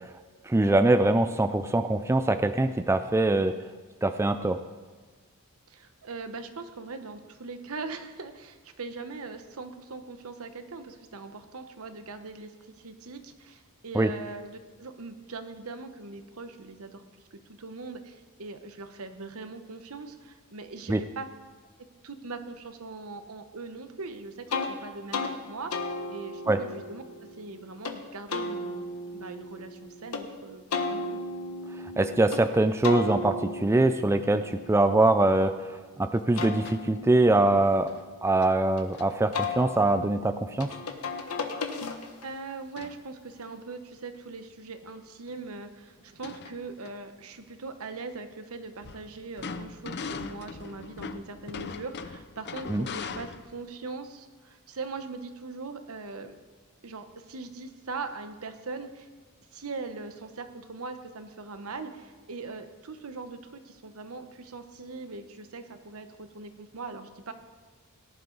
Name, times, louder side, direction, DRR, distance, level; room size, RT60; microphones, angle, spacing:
voice 1, 0.5-3.6 4.0-4.6 13.9-14.1 20.9-21.0 26.5-26.6 32.0-35.5 36.0-37.9 38.2-40.7 52.7-52.9, right 2 dB, 10° right, 9 dB, 0.3 m, -23 dB
voice 2, 5.7-17.0 17.3-21.3 22.0-27.0 27.4-28.9 29.1-30.6 30.9-31.2 41.8-41.9 42.2-56.4 56.8-59.1 59.5-67.3, right 3 dB, 70° right, 8 dB, 1.0 m, -41 dB
sound 1, 24.5-24.7 25.1-25.3 25.7-28.0 28.3-30.2 30.7-32.4 32.8-35.7 36.1-38.8 39.3-42.3, left 3 dB, 85° left, 1.2 m, -35 dB
sound 2, 36.6-36.9 37.9-38.1 38.4-38.5 38.9-39.2 42.8-43.0 43.5-43.6 44.8-44.9 45.3-45.4 46.0-46.9 48.8-53.6, left 5 dB, 50° left, 0.6 m, -40 dB
18.0 x 11.0 x 4.0 m, 1.4 s
head